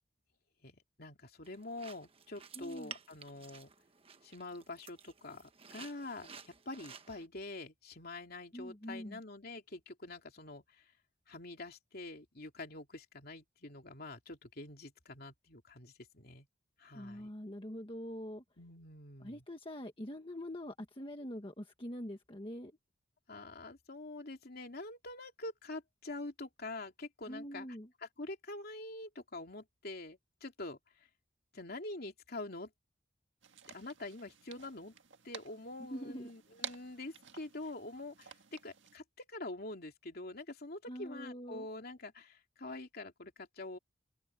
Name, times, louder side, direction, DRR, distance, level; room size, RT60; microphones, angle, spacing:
voice 1, 0.6-3.7 4.2-10.8 11.3-16.5 16.8-17.3 18.6-19.4 23.3-27.7 28.0-30.8 31.5-32.7 33.7-34.9 35.2-43.8, left 2 dB, 55° left, 3.0 m, -46 dB
sound 1, 1.4-7.3, right 6 dB, 30° right, 1.3 m, -53 dB
voice 2, 2.6-2.9 8.5-9.2 16.9-18.4 19.2-22.7 27.3-27.9 35.9-36.3 40.9-41.7, equal, 25° left, 1.5 m, -44 dB
sound 2, 33.4-39.0, right 9 dB, 75° right, 1.7 m, -51 dB
open air
head